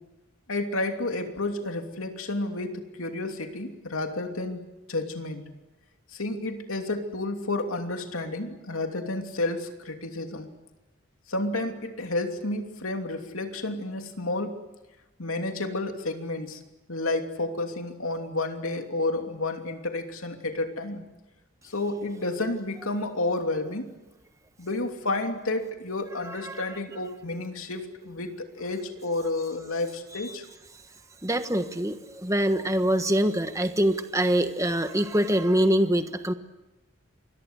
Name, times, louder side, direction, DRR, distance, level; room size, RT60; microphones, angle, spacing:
voice 1, 0.5-5.5 6.1-10.5 11.3-14.6 15.2-16.6 16.9-21.0 21.6-23.9 24.6-30.5, left 2 dB, 85° left, 4 dB, 2.9 m, -31 dB
voice 2, 26.2-26.7 31.2-36.3, right 1 dB, 15° right, 8 dB, 1.3 m, -24 dB
28.0 x 22.5 x 8.2 m, 1.0 s
head